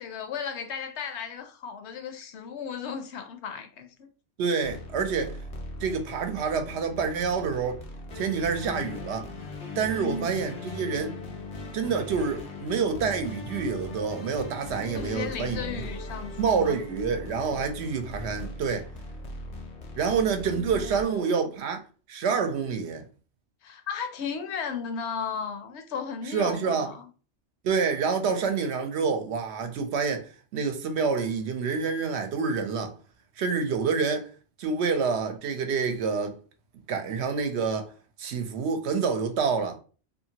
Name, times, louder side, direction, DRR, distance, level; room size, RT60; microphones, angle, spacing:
voice 1, 0.0-4.1 9.9-10.3 14.9-16.8 20.5-21.5 23.6-27.1, left 6 dB, 75° left, 0.8 m, -35 dB
voice 2, 4.4-5.4 5.8-7.8 8.2-9.3 9.8-11.1 11.7-15.9 16.4-18.9 20.0-21.8 22.1-23.0 26.3-26.9 27.6-32.9 33.4-34.3 34.6-36.4 36.9-37.9 38.2-39.8, right 5 dB, 70° right, 0.8 m, -27 dB
sound 1, 4.6-21.0, left 2 dB, 45° left, 0.6 m, -39 dB
2.7 x 2.6 x 2.8 m
omnidirectional pair, 1.2 m